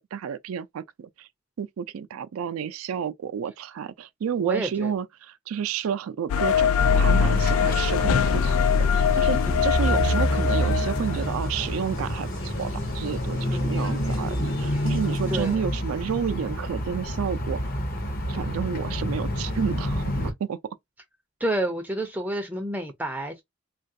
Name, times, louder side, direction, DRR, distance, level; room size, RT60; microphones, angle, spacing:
voice 1, 0.1-1.3 1.6-17.6 18.3-20.6, right 7 dB, 90° right, 0.4 m, -31 dB
voice 2, 4.4-4.9 9.5-9.6 13.5-13.8 14.7-14.8 15.3-15.6 21.4-23.4, right 1 dB, 10° right, 0.4 m, -30 dB
sound 1, 6.3-11.3, left 7 dB, 90° left, 0.3 m, -22 dB
sound 2, 6.8-20.3, equal, 45° left, 0.7 m, -28 dB
Speech, 7.3-15.5, left 3 dB, 60° left, 1.1 m, -45 dB
3.1 x 2.3 x 2.6 m
head